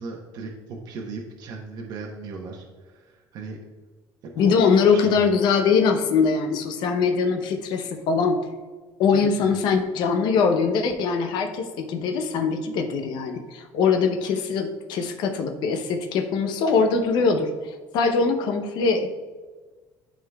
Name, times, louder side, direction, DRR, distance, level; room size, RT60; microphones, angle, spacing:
voice 1, 0.0-3.6 4.4-5.3 9.1-9.5, right 4 dB, 60° right, 0 dB, 0.9 m, -37 dB
voice 2, 4.4-8.4 9.0-19.1, left 5 dB, 70° left, 5 dB, 0.7 m, -22 dB
11.5 x 3.8 x 2.3 m, 1.3 s
cardioid pair, 115°, 8 cm